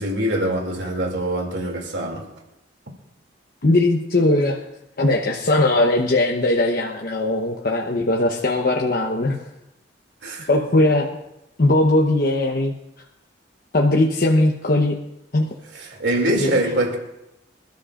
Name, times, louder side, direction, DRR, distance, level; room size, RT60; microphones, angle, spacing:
voice 1, 0.0-2.3 10.2-10.5 15.7-17.0, right 1 dB, 75° right, 2.7 m, -23 dB
voice 2, 3.6-4.6 5.0-9.5 10.5-11.1 11.6-12.7 13.7-15.0 15.3-15.5 16.4-16.5, left 2 dB, 55° left, 1.0 m, -19 dB
26.0 x 13.0 x 2.5 m
head